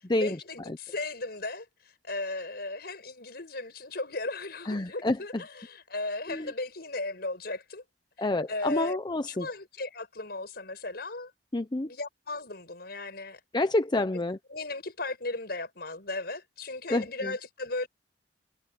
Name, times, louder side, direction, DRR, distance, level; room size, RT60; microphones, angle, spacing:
voice 1, 0.0-7.8 8.2-9.0 9.3-11.3 11.9-13.4 14.1-14.2 14.5-17.9, left 2 dB, 55° left, 6.0 m, -36 dB
voice 2, 4.7-5.2 6.3-6.5 8.2-9.5 11.5-11.9 13.5-14.4 16.9-17.3, left 2 dB, 25° left, 0.7 m, -28 dB
head